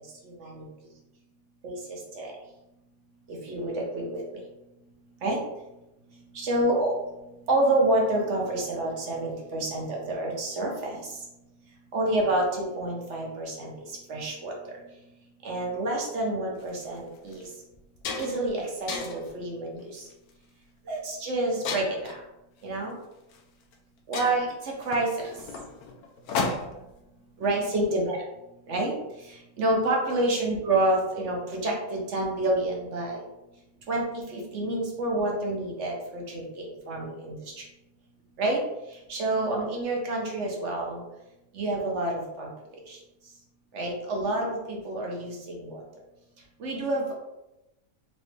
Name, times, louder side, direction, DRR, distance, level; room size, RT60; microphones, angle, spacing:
voice 1, 0.2-0.6 1.6-2.3 3.3-4.4 5.2-5.4 6.3-6.9 7.5-11.2 11.9-14.5 15.4-17.5 18.2-20.1 20.9-22.1 22.6-22.9 24.1-25.3 27.4-28.2 28.7-28.9 29.2-33.2 33.9-37.6 38.4-38.6 39.1-41.0 41.5-42.5 42.9-43.0 43.7-45.8 46.6-47.1, right 2 dB, 60° right, -1 dB, 1.1 m, -28 dB
sound 1, 16.6-16.8 17.3-17.4 17.7-18.5 18.9-19.3 20.0-20.3 21.6-22.2 23.3-23.4 23.7-23.8 24.1-26.9, left 4 dB, 90° left, 1.1 m, -33 dB
4.1 x 2.6 x 3.2 m, 0.94 s
omnidirectional pair, 1.5 m